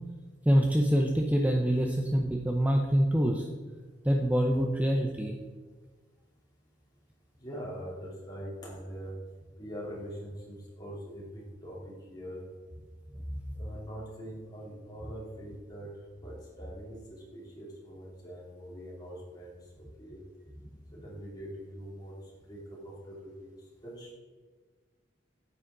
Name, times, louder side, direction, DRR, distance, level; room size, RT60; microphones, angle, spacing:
voice 1, 0.5-3.5 4.0-5.3, equal, 10° right, 2 dB, 0.6 m, -25 dB
voice 2, 7.4-9.1 9.6-12.4 13.5-15.9 16.2-19.6 20.0-20.2 20.9-22.1 22.5-23.5 23.8-24.1, equal, 20° left, -5 dB, 3.1 m, -43 dB
9.1 x 8.7 x 3.8 m, 1.4 s
head